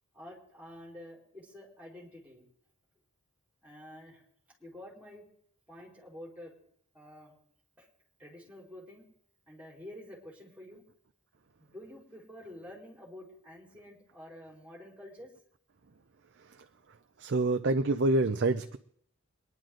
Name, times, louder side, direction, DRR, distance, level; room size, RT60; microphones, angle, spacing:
voice 1, 0.1-2.4 3.6-4.2 4.6-5.2 5.7-6.5 6.9-7.3 7.8-7.9 8.2-9.0 9.5-10.8 11.6-15.3, left 1 dB, 5° right, -3 dB, 4.2 m, -49 dB
voice 2, 17.2-18.8, right 2 dB, 50° right, 8 dB, 0.5 m, -26 dB
23.0 x 11.0 x 3.8 m, 0.66 s
head